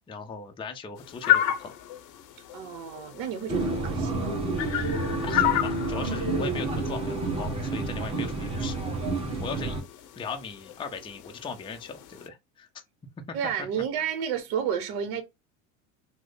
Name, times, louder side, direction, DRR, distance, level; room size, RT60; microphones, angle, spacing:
voice 1, 0.1-1.7 5.2-8.8 9.4-9.8 10.2-12.7 13.3-13.4, left 5 dB, 15° left, 0.5 m, -38 dB
Pinkfoot Geese Roosting, 1.0-12.3, left 12 dB, 50° left, 0.7 m, -32 dB
voice 2, 2.5-4.3 9.2-9.4 13.3-15.2, right 8 dB, 60° right, 0.9 m, -31 dB
sound 1, 3.5-9.8, right 2 dB, 15° right, 1.1 m, -29 dB
3.1 x 2.1 x 3.8 m
hypercardioid pair, 90°, 41 cm